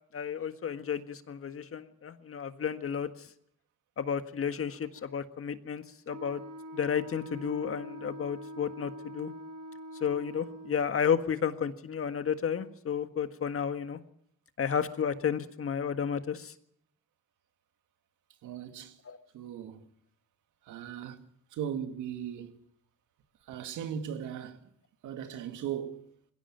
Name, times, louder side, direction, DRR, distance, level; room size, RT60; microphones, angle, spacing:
voice 1, 0.1-3.1 4.0-6.4 6.7-9.3 10.0-14.0 14.6-16.5 19.1-19.2, left 7 dB, 45° left, 1.7 m, -32 dB
Wind instrument woodwind instrument, 6.1-10.9, equal, 60° right, 5.4 m, -44 dB
voice 2, 18.4-19.0 19.3-19.9 20.6-21.2 21.5-22.6 23.4-24.6 25.0-26.1, right 9 dB, 85° right, 2.2 m, -38 dB
20.5 x 16.5 x 9.1 m
cardioid pair, 90°, 30 cm